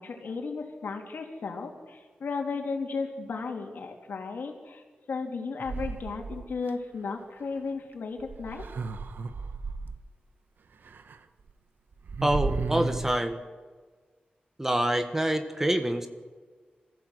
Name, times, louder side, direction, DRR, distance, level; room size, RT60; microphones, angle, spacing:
voice 1, 0.0-8.6, left 4 dB, 80° left, 3 dB, 3.2 m, -35 dB
sound 1, 5.6-6.7 8.2-10.0 10.8-11.2 11.5-11.6 11.9-13.2, right 4 dB, 85° right, 1.1 m, -34 dB
voice 2, 12.2-13.4 14.6-16.1, right 1 dB, 15° right, 7 dB, 1.4 m, -26 dB
26.0 x 15.5 x 8.1 m, 1.5 s
wide cardioid pair, 165°, 3 cm